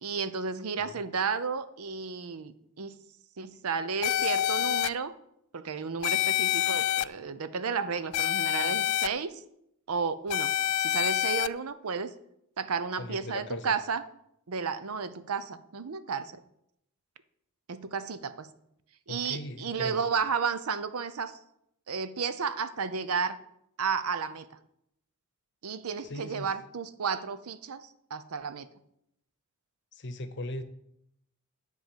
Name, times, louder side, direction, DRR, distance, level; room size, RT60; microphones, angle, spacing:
voice 1, 0.0-3.0 3.4-5.1 5.5-9.4 9.9-12.1 12.6-14.0 14.5-16.3 17.7-18.5 19.1-21.4 21.9-23.4 23.8-24.5 25.6-27.8 28.1-28.7, right 5 dB, 75° right, 13 dB, 0.6 m, -32 dB
sound 1, 4.0-4.9 6.0-7.0 8.1-9.1 10.3-11.5, left 13 dB, 75° left, 0.3 m, -27 dB
voice 2, 13.0-13.7 19.1-20.0 26.0-26.5 29.9-30.6, left 2 dB, 55° left, 10 dB, 0.8 m, -38 dB
10.5 x 3.8 x 7.3 m, 0.76 s
head